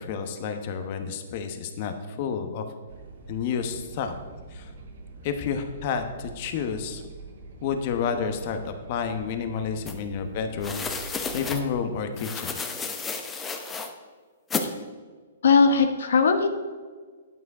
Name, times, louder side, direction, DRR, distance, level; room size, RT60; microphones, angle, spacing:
voice 1, 0.0-2.6 3.3-4.1 4.5-4.7 5.2-7.0 7.6-10.8 11.3-12.5, left 6 dB, 45° left, 7 dB, 1.0 m, -30 dB
sound 1, 2.9-11.8, right 3 dB, 65° right, 1.5 m, -44 dB
sound 2, 9.9-10.0 10.6-11.6 12.2-13.9 14.5-14.7, left 5 dB, 15° left, 0.9 m, -32 dB
voice 2, 15.4-16.5, left 5 dB, 75° left, 7 dB, 1.0 m, -19 dB
9.4 x 8.4 x 4.9 m, 1.5 s
hypercardioid pair, 140°, 0 cm